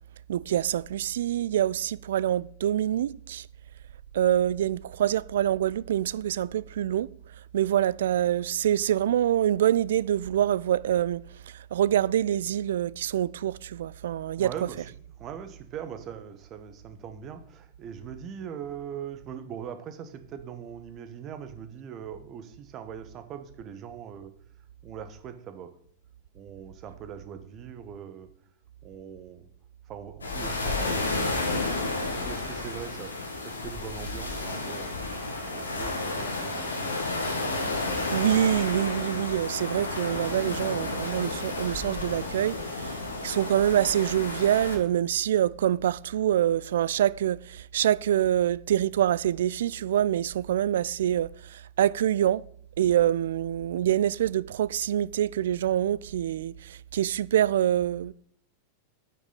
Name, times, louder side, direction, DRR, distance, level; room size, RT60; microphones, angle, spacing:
voice 1, 0.3-3.4 4.1-7.1 7.5-11.2 11.7-14.5 38.1-43.0 43.2-52.4 52.8-58.1, right 11 dB, 60° right, 0.3 m, -25 dB
voice 2, 14.4-14.9 15.2-24.3 24.8-25.7 26.3-28.3 28.8-29.5 29.9-31.4 31.8-33.1 33.4-34.9 35.2-37.2, right 8 dB, 35° right, 1.3 m, -41 dB
sound 1, 30.2-44.8, left 2 dB, 75° left, 1.9 m, -31 dB
9.6 x 9.1 x 4.1 m
figure-of-eight pair, 90°, 0 cm